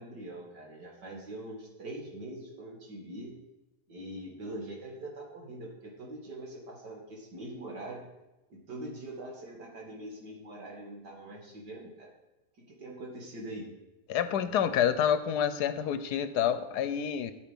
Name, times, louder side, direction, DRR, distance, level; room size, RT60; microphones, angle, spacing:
voice 1, 0.0-3.3 3.9-8.0 8.5-12.1 12.7-13.7, right 1 dB, 80° right, -1 dB, 2.8 m, -43 dB
voice 2, 14.1-17.3, left 9 dB, 75° left, 12 dB, 1.2 m, -28 dB
9.1 x 9.0 x 5.3 m, 1.0 s
omnidirectional pair, 1.8 m